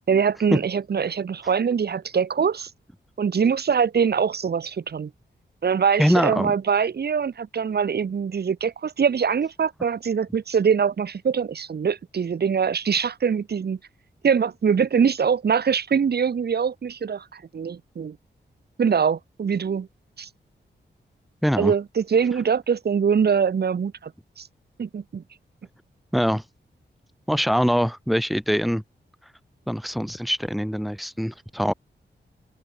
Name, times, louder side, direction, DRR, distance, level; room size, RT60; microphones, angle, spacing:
voice 1, 0.1-2.7 3.2-5.1 5.6-13.8 14.2-18.2 18.8-19.9 20.2-20.3 21.6-24.1 24.4-24.5 24.8-25.2, right 6 dB, 60° right, 1.2 m, -23 dB
voice 2, 6.0-6.5 21.4-21.7 26.1-26.4 27.3-28.8 29.7-31.7, equal, ahead, 3.6 m, -23 dB
open air
wide cardioid pair, 105°, 19 cm